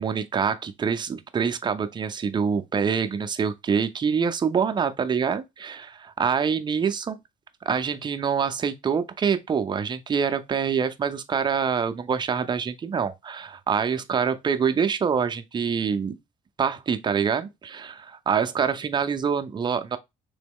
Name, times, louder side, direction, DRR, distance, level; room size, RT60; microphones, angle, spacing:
voice 1, 0.0-7.2 7.7-16.2 16.6-20.0, right 6 dB, 25° right, 0.4 m, -25 dB
3.4 x 3.0 x 3.5 m
cardioid pair, 110°, 17 cm